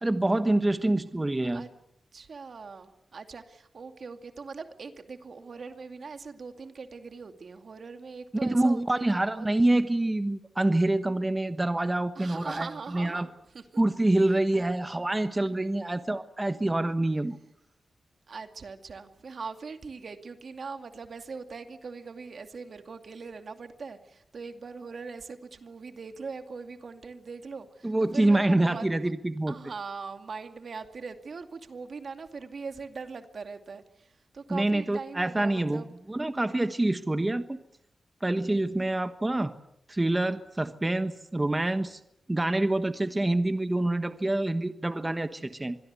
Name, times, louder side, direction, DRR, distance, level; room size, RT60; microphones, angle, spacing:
voice 1, 0.0-1.6 8.4-13.3 13.8-17.4 27.8-29.6 34.5-37.6 38.2-39.5 39.9-42.0 42.3-45.8, right 1 dB, 20° right, 10 dB, 1.2 m, -26 dB
voice 2, 2.1-9.5 12.2-13.8 14.2-14.7 18.3-28.9 29.5-35.9, right 4 dB, 65° right, 7 dB, 2.4 m, -41 dB
25.0 x 22.0 x 8.3 m, 0.80 s
cardioid pair, 70°, 0 cm